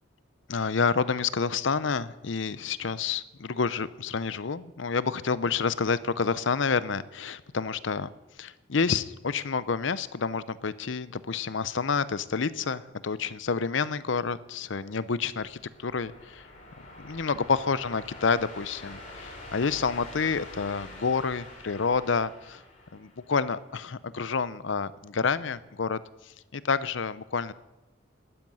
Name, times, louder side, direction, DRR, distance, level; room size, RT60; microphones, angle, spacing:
voice 1, 0.5-8.1 8.4-16.4 17.0-22.6 22.9-26.0 26.5-27.5, left 5 dB, 70° left, 17 dB, 0.6 m, -29 dB
sound 1, 15.2-23.6, left 2 dB, 40° left, 3.7 m, -46 dB
12.5 x 9.6 x 9.1 m, 1.0 s
head